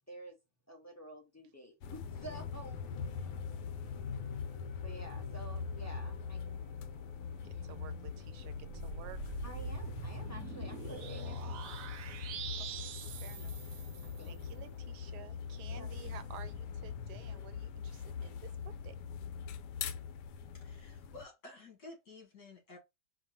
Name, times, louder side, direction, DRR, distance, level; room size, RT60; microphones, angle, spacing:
voice 1, 0.7-2.8 4.8-6.7 7.5-7.6 9.4-11.9 14.0-14.4 15.7-15.9, equal, 15° left, 0.7 m, -50 dB
sound 1, 1.8-21.2, left 6 dB, 85° left, 1.2 m, -42 dB
sound 2, 2.1-16.9, left 2 dB, 40° left, 2.4 m, -60 dB
voice 2, 7.4-9.3 10.3-10.4 12.6-12.9 13.2-13.6 14.2-19.0, right 10 dB, 85° right, 1.2 m, -53 dB
sound 3, 8.5-14.3, right 8 dB, 65° right, 0.9 m, -45 dB
voice 3, 20.5-22.8, left 2 dB, 70° left, 2.5 m, -52 dB
4.8 x 2.2 x 4.2 m
omnidirectional pair, 1.8 m